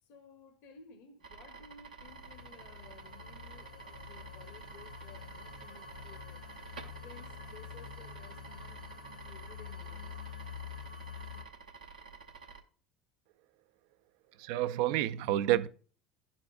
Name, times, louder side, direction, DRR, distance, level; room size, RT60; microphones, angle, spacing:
voice 1, 0.0-6.4 7.0-8.9 9.2-10.2, left 4 dB, 55° left, 1.0 m, -56 dB
sound 1, 1.2-12.6, right 5 dB, 80° right, 0.8 m, -51 dB
sound 2, 2.0-11.4, left 7 dB, 90° left, 0.7 m, -47 dB
voice 2, 14.4-15.7, right 13 dB, 60° right, 0.4 m, -29 dB
11.5 x 4.4 x 2.4 m
figure-of-eight pair, 65°, 4 cm